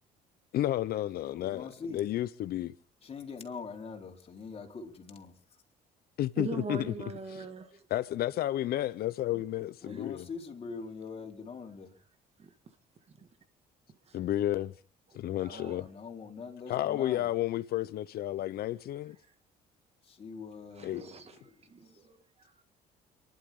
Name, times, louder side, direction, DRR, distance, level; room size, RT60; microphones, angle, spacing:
voice 1, 0.5-1.7 1.9-2.7 6.2-6.9 7.3-7.4 7.9-10.2 14.1-14.7 15.1-15.9 16.7-19.2 20.8-21.0, left 13 dB, 65° left, 0.8 m, -31 dB
voice 2, 1.3-2.0 3.0-5.4 9.8-11.9 15.4-17.3 20.0-22.1, left 5 dB, 35° left, 4.2 m, -43 dB
voice 3, 6.4-7.9 9.3-9.4 9.9-10.0 12.4-12.8 13.2-13.3 14.0-14.2 15.1-15.8 20.8-22.5, right 5 dB, 40° right, 2.0 m, -43 dB
29.5 x 12.0 x 3.8 m
cardioid pair, 110°, 17 cm